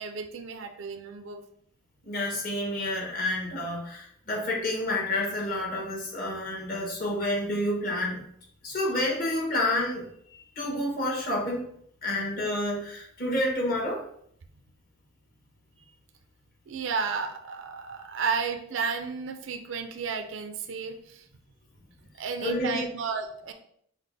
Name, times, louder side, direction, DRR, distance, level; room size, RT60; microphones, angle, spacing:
voice 1, 0.0-1.4 16.7-21.2 22.2-23.5, right 5 dB, 70° right, 6 dB, 0.4 m, -32 dB
voice 2, 2.0-8.2 8.6-11.7 12.0-14.0 22.4-22.8, left 1 dB, 45° left, -2 dB, 1.2 m, -29 dB
5.7 x 2.1 x 3.3 m, 0.66 s
head